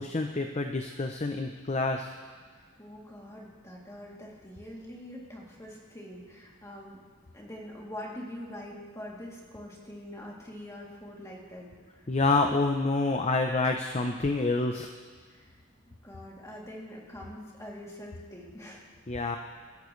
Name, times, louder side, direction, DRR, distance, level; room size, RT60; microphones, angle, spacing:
voice 1, 0.0-2.1 12.1-14.9 19.1-19.4, left 3 dB, 30° left, 5 dB, 0.6 m, -27 dB
voice 2, 2.6-7.0 7.3-12.1 15.3-15.6 15.9-18.9, left 1 dB, 15° left, -4 dB, 2.8 m, -44 dB
24.0 x 13.5 x 3.2 m, 1.5 s
head